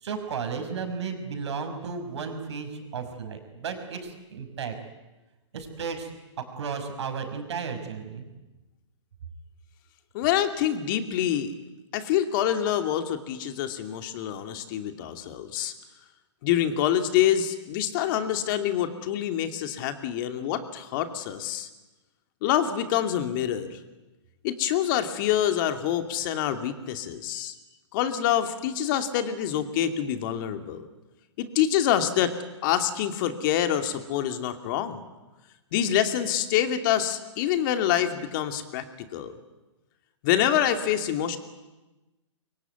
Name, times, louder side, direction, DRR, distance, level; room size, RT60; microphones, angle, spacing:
voice 1, 0.0-4.7 5.5-6.1 6.6-8.2, right 5 dB, 65° right, 7 dB, 5.6 m, -34 dB
voice 2, 10.1-11.5 11.9-15.7 16.4-21.7 22.4-23.8 24.4-27.5 27.9-30.9 31.4-32.4 32.6-35.0 35.7-38.8 39.1-39.4 40.2-41.4, left 10 dB, 45° left, 8 dB, 2.6 m, -26 dB
25.0 x 23.5 x 9.5 m, 1.1 s
hypercardioid pair, 125°, 16 cm